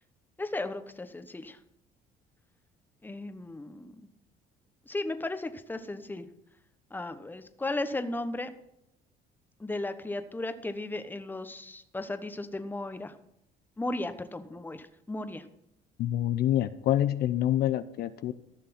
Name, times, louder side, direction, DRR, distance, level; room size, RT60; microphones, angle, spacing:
voice 1, 0.4-1.6 3.0-4.0 4.9-6.3 6.9-8.5 9.6-13.1 13.8-15.4, left 2 dB, 10° left, 9 dB, 1.1 m, -35 dB
voice 2, 16.0-18.3, left 12 dB, 70° left, 13 dB, 0.7 m, -27 dB
14.5 x 6.6 x 5.8 m, 0.80 s
cardioid pair, 110°, 17 cm